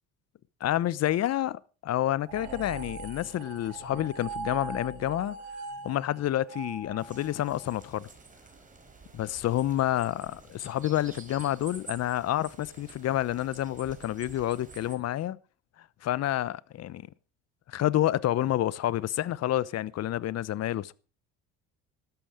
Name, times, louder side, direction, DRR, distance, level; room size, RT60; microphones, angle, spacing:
voice 1, 0.6-5.4 5.8-8.1 9.1-15.4 16.0-17.1 17.7-20.9, left 13 dB, 50° left, 0.9 m, -29 dB
sound 1, 2.3-7.7, right 4 dB, 85° right, 3.8 m, -41 dB
sound 2, 7.0-15.0, right 4 dB, 25° right, 4.7 m, -50 dB
13.0 x 12.5 x 5.0 m
supercardioid pair, 90°, 33 cm